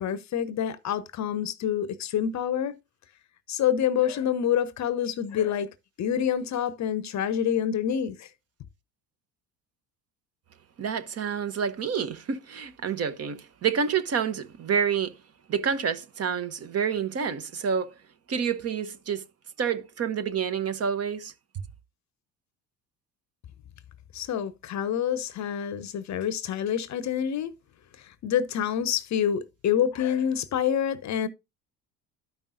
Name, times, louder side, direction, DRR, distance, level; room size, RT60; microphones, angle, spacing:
voice 1, 0.0-2.8 3.5-5.7 6.0-8.3 24.1-27.5 28.2-31.3, left 9 dB, 40° left, 0.7 m, -27 dB
voice 2, 10.8-15.2 15.5-17.9 18.3-19.2 19.6-21.3, right 7 dB, 35° right, 0.8 m, -28 dB
12.5 x 5.3 x 2.5 m
hypercardioid pair, 60°, 42 cm